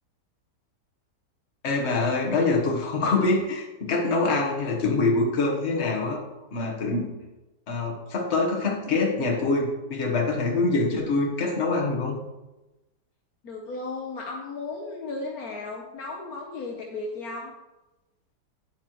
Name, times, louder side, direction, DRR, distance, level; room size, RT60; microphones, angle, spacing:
voice 1, 1.6-6.2 6.5-7.1 7.7-12.2, left 3 dB, 40° left, 0 dB, 1.4 m, -25 dB
voice 2, 13.4-17.5, left 3 dB, 65° left, 0 dB, 1.3 m, -35 dB
9.4 x 8.5 x 3.0 m, 1.0 s
omnidirectional pair, 1.8 m